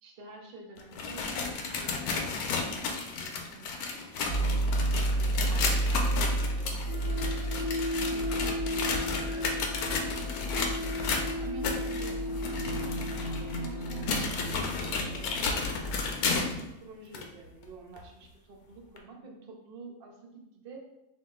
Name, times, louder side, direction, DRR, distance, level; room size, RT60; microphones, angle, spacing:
voice 1, 0.0-3.7 4.1-7.7 8.1-14.1 14.7-16.0 16.4-20.8, right 4 dB, 50° right, 1 dB, 0.7 m, -49 dB
sound 1, 0.8-16.6 17.1-17.2 18.0-18.1 19.0-19.1, left 4 dB, 85° left, 1.1 m, -33 dB
sound 2, 4.3-16.1, right 1 dB, 30° left, 1.0 m, -31 dB
3.6 x 2.7 x 3.8 m, 0.88 s
omnidirectional pair, 1.6 m